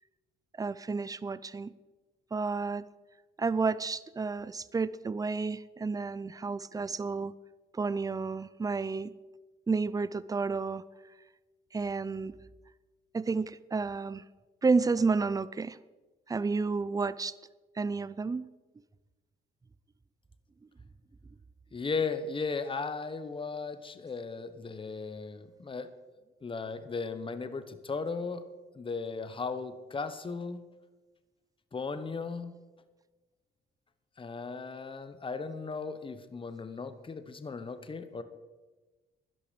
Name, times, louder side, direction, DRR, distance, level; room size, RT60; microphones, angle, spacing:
voice 1, 0.6-1.7 2.3-2.8 3.4-7.3 7.7-9.1 9.7-10.9 11.7-12.3 13.1-14.2 14.6-15.8 16.3-17.3 17.8-18.4, right 4 dB, 20° right, 17 dB, 0.5 m, -31 dB
voice 2, 21.7-25.9 26.4-28.4 28.7-30.6 31.7-32.5 34.2-38.2, left 4 dB, 25° left, 11 dB, 1.0 m, -36 dB
11.5 x 11.0 x 5.2 m, 1.2 s
cardioid pair, 90°, 20 cm